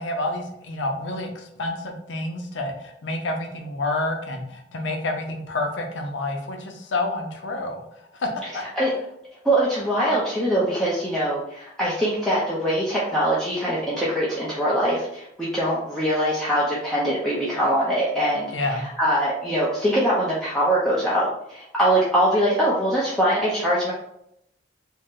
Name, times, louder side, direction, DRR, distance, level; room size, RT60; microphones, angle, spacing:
voice 1, 0.0-8.6 18.5-18.9, left 2 dB, 90° left, 3 dB, 0.6 m, -29 dB
voice 2, 9.4-23.9, right 1 dB, 5° left, -8 dB, 0.5 m, -23 dB
2.7 x 2.1 x 3.6 m, 0.78 s
head